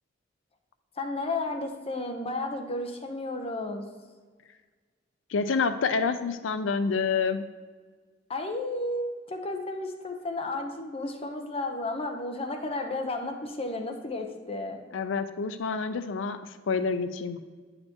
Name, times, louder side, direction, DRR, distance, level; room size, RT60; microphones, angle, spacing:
voice 1, 1.0-3.9 8.3-14.8, left 2 dB, 30° left, 4 dB, 0.8 m, -33 dB
voice 2, 5.3-7.5 14.9-17.4, left 5 dB, 85° left, 10 dB, 0.5 m, -28 dB
9.8 x 6.6 x 2.9 m, 1.5 s
head